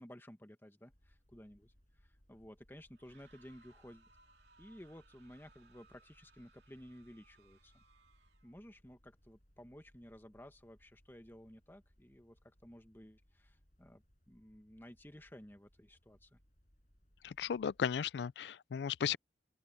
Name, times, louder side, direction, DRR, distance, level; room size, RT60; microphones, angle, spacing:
voice 1, 0.0-4.1 4.6-7.8 8.4-16.4, equal, 10° left, 1.5 m, -55 dB
sound 1, 0.9-18.0, equal, 45° left, 6.1 m, -70 dB
sound 2, 2.9-8.6, right 4 dB, 75° right, 2.7 m, -68 dB
voice 2, 17.2-19.2, left 7 dB, 70° left, 0.3 m, -35 dB
open air
head